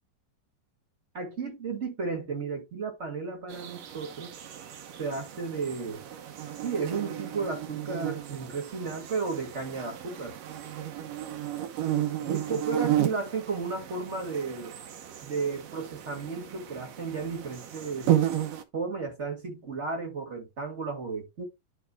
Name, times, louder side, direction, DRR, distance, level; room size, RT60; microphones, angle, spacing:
voice 1, 1.1-4.3 5.0-6.0 6.6-10.4 12.2-14.7 15.2-18.1 18.7-21.4, right 4 dB, 30° right, 1.5 m, -33 dB
sound 1, 3.5-18.6, right 12 dB, 75° right, 1.5 m, -33 dB
11.0 x 4.7 x 2.2 m
omnidirectional pair, 4.0 m